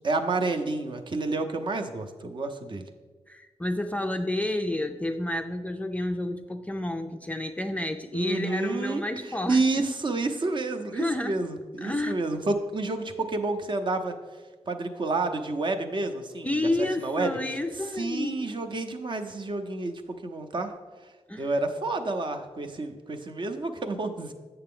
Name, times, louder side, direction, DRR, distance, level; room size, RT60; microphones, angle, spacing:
voice 1, 0.0-2.8 8.1-14.1 14.7-17.6 17.9-20.7 21.4-24.3, right 3 dB, 40° right, 6 dB, 0.6 m, -29 dB
voice 2, 3.3-9.6 10.9-11.4 11.8-12.1 16.4-18.4 21.3-21.5, left 1 dB, 10° left, 5 dB, 0.4 m, -30 dB
7.8 x 6.8 x 3.7 m, 1.4 s
wide cardioid pair, 125°, 12 cm